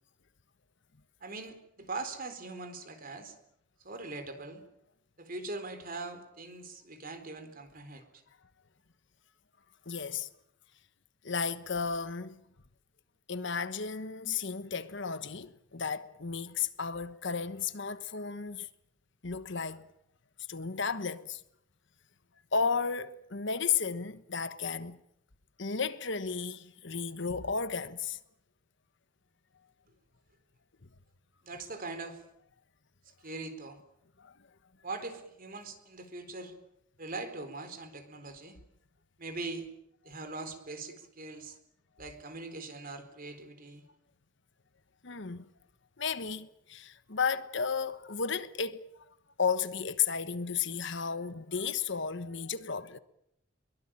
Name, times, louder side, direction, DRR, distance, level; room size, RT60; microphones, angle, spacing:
voice 1, 1.2-3.4 3.8-4.6 5.2-8.1 31.4-32.2 33.2-33.8 34.8-36.6 37.0-38.6 39.2-39.7 40.0-41.6 42.0-43.9, right 3 dB, 45° right, 4.1 m, -41 dB
voice 2, 9.8-10.3 11.2-12.4 13.3-18.7 19.2-19.8 20.5-21.4 22.5-25.0 25.6-28.2 34.2-34.3 45.0-45.4 46.0-48.8 49.4-53.0, left 5 dB, 65° left, 1.3 m, -33 dB
22.5 x 22.0 x 8.9 m
head